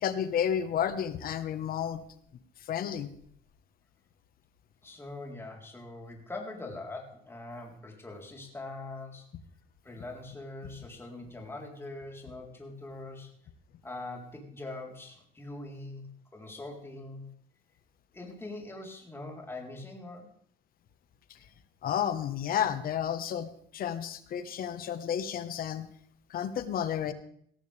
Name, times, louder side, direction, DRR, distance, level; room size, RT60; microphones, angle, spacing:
voice 1, 0.0-2.0 2.7-3.1 21.8-25.9 26.3-27.1, left 9 dB, 60° left, 11 dB, 1.3 m, -31 dB
voice 2, 4.8-9.3 9.8-13.3 13.8-16.1 16.3-17.2 18.1-20.3, left 2 dB, 15° left, 0 dB, 3.9 m, -42 dB
18.0 x 14.0 x 3.4 m, 0.64 s
cardioid pair, 110°, 17 cm